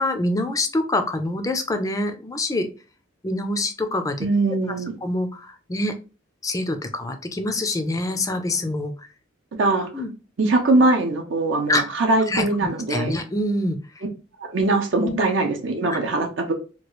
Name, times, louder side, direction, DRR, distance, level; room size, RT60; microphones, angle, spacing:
voice 1, 0.0-2.7 3.2-4.3 5.0-5.9 6.4-8.9 9.9-10.1 11.7-11.8 12.3-14.0 15.0-15.2 15.9-16.0, left 1 dB, 15° left, 7 dB, 0.4 m, -25 dB
voice 2, 4.2-4.9 9.6-9.9 10.4-13.2 14.4-16.5, right 2 dB, 70° right, 3 dB, 0.6 m, -21 dB
3.0 x 2.3 x 3.0 m, 0.33 s
head